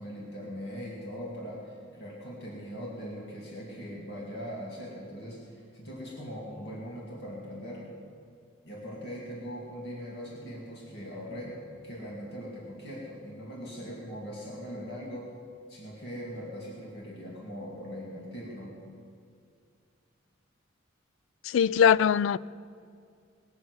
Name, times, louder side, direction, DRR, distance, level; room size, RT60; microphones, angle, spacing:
voice 1, 0.0-7.9 8.6-11.6 11.8-15.3 15.7-18.7, equal, 55° left, 2.3 m, -40 dB
voice 2, 21.4-22.4, left 7 dB, 80° left, 0.3 m, -21 dB
19.0 x 7.1 x 8.0 m
head